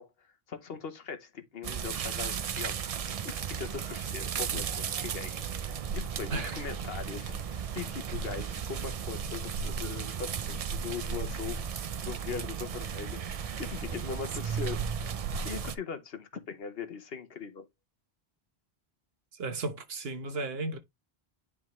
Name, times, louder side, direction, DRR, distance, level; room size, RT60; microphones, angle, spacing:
voice 1, 0.0-11.6 12.0-13.2 13.6-14.8 15.4-17.7, left 6 dB, 70° left, 1.2 m, -40 dB
sound 1, 1.6-15.8, right 7 dB, 50° right, 0.5 m, -35 dB
voice 2, 6.3-6.6 19.4-20.8, right 3 dB, 75° right, 1.3 m, -34 dB
10.0 x 3.7 x 3.1 m
omnidirectional pair, 1.0 m